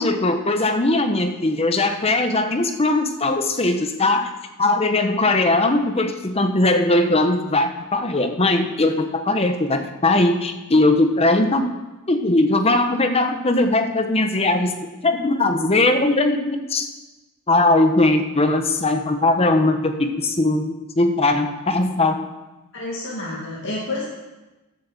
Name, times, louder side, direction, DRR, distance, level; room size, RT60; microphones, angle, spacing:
voice 1, 0.0-4.3 4.6-11.7 12.1-14.7 15.0-16.9 17.5-22.3, left 2 dB, 30° left, 7 dB, 0.9 m, -19 dB
voice 2, 22.7-24.1, left 2 dB, 60° left, -5 dB, 2.0 m, -29 dB
10.5 x 7.4 x 7.3 m, 1.1 s
head